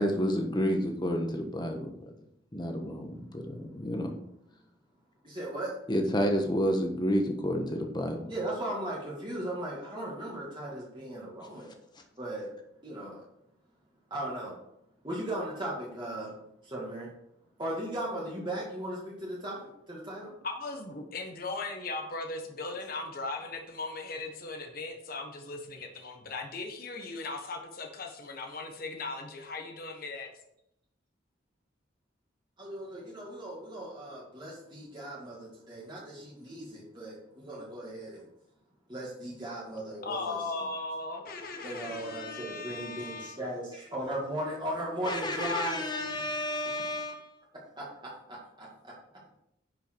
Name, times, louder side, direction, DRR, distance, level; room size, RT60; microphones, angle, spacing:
voice 1, 0.0-2.1 2.5-4.2 5.9-8.3 45.0-47.3, equal, 20° left, 3 dB, 1.3 m, -30 dB
voice 2, 5.2-5.7 8.3-11.7 12.2-12.5 12.8-13.2 14.1-14.6 15.0-16.3 16.6-17.1 17.6-20.4 32.6-38.2 38.9-40.4 41.6-45.9 47.8-48.9, right 1 dB, 25° right, -5 dB, 2.1 m, -37 dB
voice 3, 20.4-30.3 40.0-43.4, left 3 dB, 50° left, 3 dB, 1.3 m, -38 dB
10.5 x 5.6 x 4.7 m, 0.78 s
head